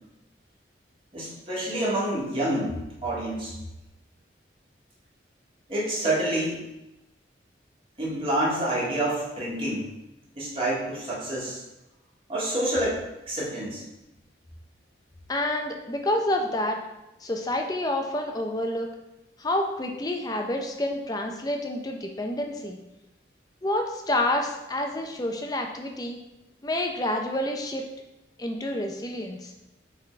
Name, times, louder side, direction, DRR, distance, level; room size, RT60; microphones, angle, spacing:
voice 1, 1.1-3.5 5.7-6.6 8.0-9.9 10.3-11.6 12.3-13.0 13.3-13.8, right 1 dB, 30° right, -6 dB, 1.8 m, -28 dB
voice 2, 15.3-16.8 17.2-18.9 19.4-22.8 23.6-26.2 26.6-27.8 28.4-29.5, left 1 dB, 20° left, 2 dB, 0.6 m, -28 dB
5.9 x 3.6 x 4.4 m, 0.94 s
head